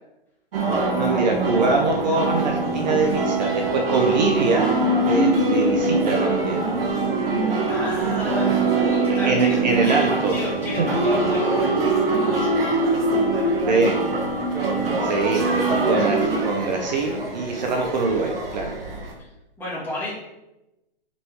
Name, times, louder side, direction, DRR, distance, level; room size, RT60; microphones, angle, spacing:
sound 1, 0.5-19.1, right 2 dB, 65° right, 2.3 m, -23 dB
voice 1, 0.9-4.7 5.1-6.6 9.1-10.4 13.7-13.9 15.0-18.7, right 3 dB, 45° right, 2 dB, 1.2 m, -23 dB
voice 2, 7.7-11.7 19.6-20.1, left 1 dB, 5° left, -8 dB, 2.2 m, -31 dB
6.6 x 6.0 x 4.7 m, 0.95 s
hypercardioid pair, 165°, 31 cm